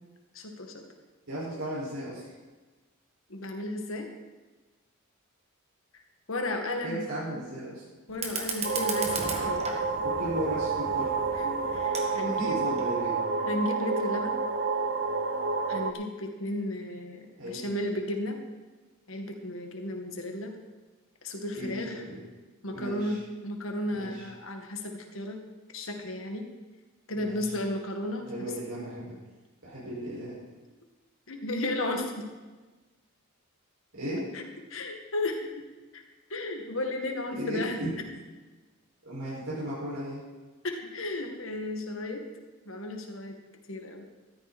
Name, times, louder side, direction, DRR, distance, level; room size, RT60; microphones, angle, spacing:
voice 1, 0.3-0.8 3.3-4.1 6.3-7.0 7.3-7.4 8.1-9.6 11.4-12.6 13.5-14.4 15.7-18.4 19.1-20.5 21.2-22.0 22.6-25.4 25.7-26.5 27.1-28.3 31.3-32.2 34.3-34.4 34.7-35.7 35.9-36.0 36.3-37.8 40.6-42.3 42.7-43.3 43.7-44.1, left 1 dB, 65° left, 3 dB, 2.0 m, -34 dB
voice 2, 1.3-2.3 6.8-7.8 10.0-11.1 11.4-11.5 12.2-13.2 17.4-17.7 21.5-22.2 22.7-23.2 23.9-24.2 27.2-27.4 28.3-29.1 29.6-30.4 33.9-34.3 37.3-37.9 39.0-40.2, right 1 dB, 80° right, -9 dB, 5.8 m, -35 dB
Fire, 8.1-13.1, right 3 dB, 30° right, 1.9 m, -37 dB
sound 1, 8.6-15.9, right 4 dB, 50° right, 0.9 m, -29 dB
14.5 x 13.5 x 4.3 m, 1.3 s
head